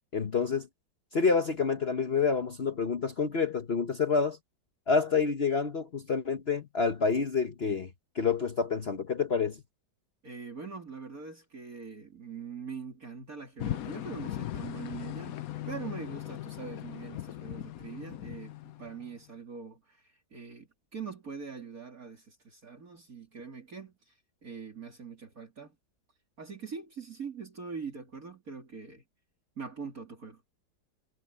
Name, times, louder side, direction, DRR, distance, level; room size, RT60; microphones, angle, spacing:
voice 1, 0.1-0.7 1.1-4.4 4.9-7.9 8.1-9.6, left 5 dB, 45° left, 1.1 m, -28 dB
voice 2, 10.2-25.8 26.4-29.0 29.6-30.4, right 5 dB, 55° right, 3.5 m, -43 dB
sound 1, 13.6-19.3, left 13 dB, 65° left, 1.1 m, -39 dB
omnidirectional pair, 1.8 m